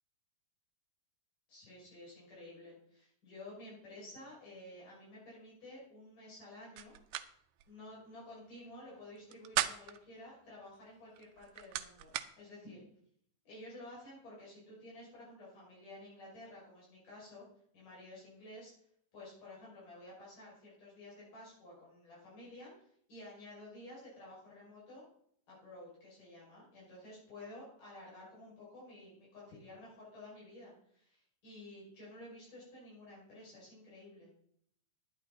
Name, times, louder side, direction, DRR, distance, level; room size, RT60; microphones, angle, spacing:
voice 1, 1.5-7.0 7.7-12.8 13.5-17.5 17.7-18.7 19.1-22.7 23.1-25.0 25.5-34.3, left 1 dB, 85° left, -7 dB, 7.5 m, -52 dB
sound 1, 6.8-7.3 7.6-7.7 9.2-10.0 11.1-12.3, right 13 dB, 85° right, 2.1 m, -37 dB
11.0 x 10.5 x 4.0 m, 0.65 s
omnidirectional pair, 3.6 m